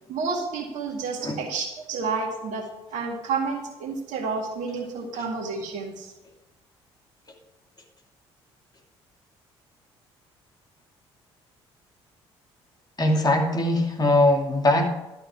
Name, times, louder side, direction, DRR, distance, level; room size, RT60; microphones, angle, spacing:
voice 1, 0.1-6.1, right 4 dB, 65° right, 3 dB, 2.0 m, -30 dB
voice 2, 13.0-14.9, left 1 dB, 30° left, 2 dB, 2.6 m, -21 dB
12.0 x 6.8 x 6.1 m, 1.0 s
hypercardioid pair, 50°, 14 cm